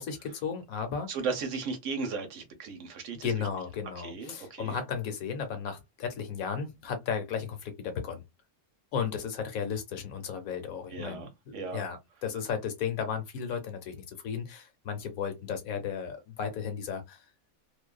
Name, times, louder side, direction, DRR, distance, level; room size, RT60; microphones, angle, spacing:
voice 1, 0.0-1.1 3.2-8.2 8.9-11.3 11.5-17.2, left 7 dB, 80° left, 1.2 m, -34 dB
voice 2, 1.1-3.3 4.0-4.8 10.9-11.8, right 4 dB, 65° right, 0.9 m, -36 dB
2.6 x 2.2 x 2.2 m
omnidirectional pair, 1.5 m